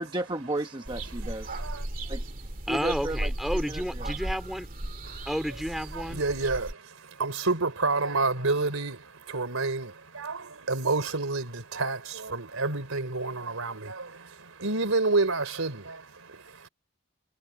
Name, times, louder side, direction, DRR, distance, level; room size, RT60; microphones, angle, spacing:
voice 1, 0.0-1.6 2.1-2.2 2.7-4.1, right 1 dB, 20° right, 1.0 m, -33 dB
sound 1, 0.8-6.7, right 1 dB, 40° right, 2.5 m, -35 dB
voice 2, 1.2-1.9 5.0-5.2 5.9-16.7, right 3 dB, 90° right, 3.5 m, -29 dB
voice 3, 2.7-4.7 5.3-6.2, equal, ahead, 2.9 m, -31 dB
head